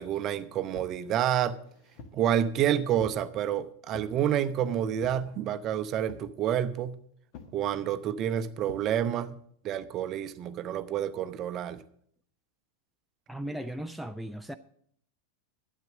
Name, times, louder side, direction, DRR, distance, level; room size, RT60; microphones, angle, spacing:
voice 1, 0.0-1.6 2.1-7.0 7.5-9.4 9.6-11.8, right 10 dB, 35° right, 0.7 m, -29 dB
sound 1, 0.7-1.0 1.6-2.2 3.0-3.3 3.9-4.2 5.0-5.3 6.1-6.4 7.3-7.6 8.7-8.9, left 4 dB, 45° left, 1.4 m, -47 dB
voice 2, 13.3-14.5, right 1 dB, ahead, 0.4 m, -37 dB
12.0 x 8.4 x 6.3 m
figure-of-eight pair, 90°, 0 cm